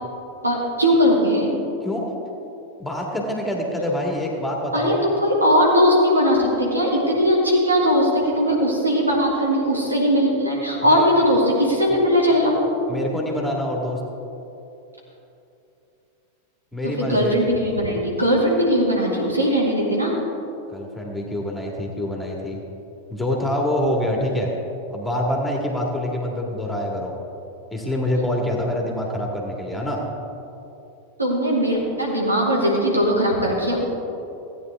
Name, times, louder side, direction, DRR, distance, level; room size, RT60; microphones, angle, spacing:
voice 1, 0.4-1.5 4.7-12.6 16.8-20.1 31.2-33.8, equal, 80° right, -4 dB, 2.5 m, -19 dB
voice 2, 2.8-5.1 10.9-11.1 12.9-14.0 16.7-17.4 20.7-22.6 23.1-24.5 24.9-27.1 27.7-30.0, left 1 dB, 5° left, -1 dB, 1.9 m, -25 dB
16.5 x 9.4 x 3.6 m, 2.8 s
figure-of-eight pair, 90°, 0 cm